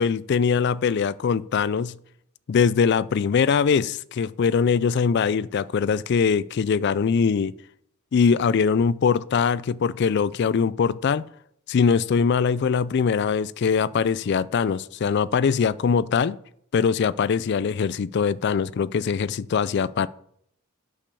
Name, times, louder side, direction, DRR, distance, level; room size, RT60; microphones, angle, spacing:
voice 1, 0.0-1.9 2.5-7.5 8.1-11.2 11.7-16.4 16.7-20.1, left 6 dB, 50° left, 0.3 m, -22 dB
8.6 x 5.2 x 6.8 m
head